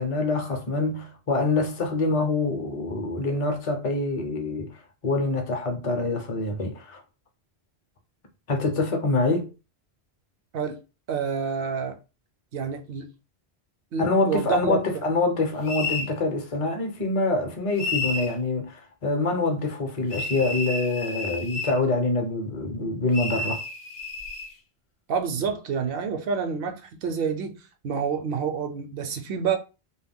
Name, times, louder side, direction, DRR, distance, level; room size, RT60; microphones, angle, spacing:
voice 1, 0.0-7.0 8.5-9.5 14.0-23.6, left 3 dB, 35° left, 0.6 m, -25 dB
voice 2, 11.1-12.0 12.5-13.1 13.9-14.8 25.1-29.6, right 6 dB, 65° right, 0.7 m, -28 dB
sound 1, 15.7-16.1 17.8-18.4 20.1-21.8 23.1-24.5, left 3 dB, 70° left, 0.8 m, -31 dB
2.2 x 2.1 x 3.5 m
omnidirectional pair, 1.1 m